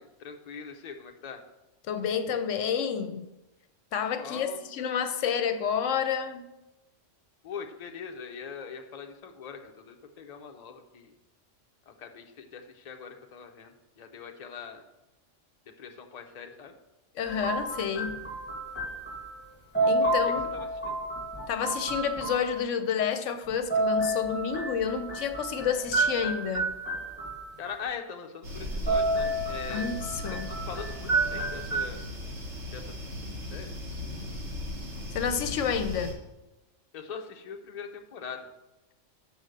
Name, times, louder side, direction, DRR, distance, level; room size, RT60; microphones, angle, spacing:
voice 1, 0.0-1.4 4.2-4.6 7.4-11.1 11.9-14.8 15.8-16.7 19.8-20.1 20.5-21.0 27.6-29.9 30.3-32.0 32.7-32.9 33.2-33.7 36.9-38.5, left 6 dB, 40° left, 0.7 m, -42 dB
voice 2, 1.9-3.3 3.9-6.4 17.1-18.2 19.9-20.5 21.5-26.7 29.7-30.5 35.1-36.2, left 7 dB, 80° left, 0.9 m, -29 dB
sound 1, 17.2-19.5 19.7-22.5 23.5-27.7 28.6-31.8, right 2 dB, 10° left, 2.0 m, -30 dB
sound 2, 28.4-36.1, left 1 dB, 65° right, 1.6 m, -37 dB
6.3 x 5.1 x 6.6 m
omnidirectional pair, 1.3 m